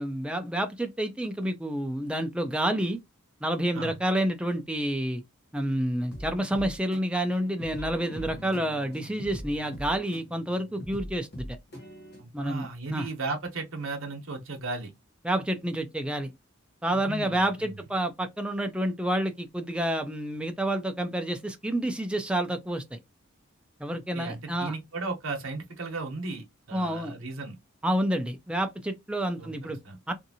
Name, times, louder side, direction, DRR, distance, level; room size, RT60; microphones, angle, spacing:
voice 1, 0.0-3.0 3.4-5.2 5.5-11.5 12.3-13.1 15.2-16.3 16.8-23.0 23.8-24.7 26.7-27.1 27.8-29.8 30.1-30.2, right 1 dB, 5° right, 0.3 m, -29 dB
sound 1, 6.1-12.2, equal, 50° left, 0.9 m, -42 dB
voice 2, 12.2-14.9 16.9-17.8 24.1-27.6 29.4-30.0, right 3 dB, 70° right, 0.9 m, -36 dB
2.7 x 2.5 x 2.7 m
head